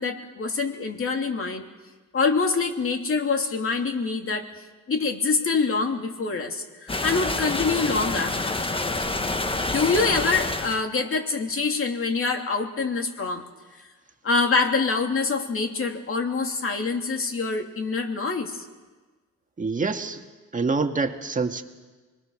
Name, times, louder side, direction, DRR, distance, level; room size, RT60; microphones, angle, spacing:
voice 1, 0.0-1.7 2.1-4.5 4.9-8.6 9.6-13.4 14.2-18.6, left 4 dB, 45° left, 3 dB, 3.0 m, -25 dB
sound 1, 6.9-10.8, left 2 dB, 20° left, 1.4 m, -27 dB
voice 2, 19.6-20.2 20.5-21.6, right 4 dB, 25° right, 5 dB, 2.0 m, -26 dB
26.0 x 21.5 x 6.6 m, 1.3 s
cardioid pair, 90°, 30 cm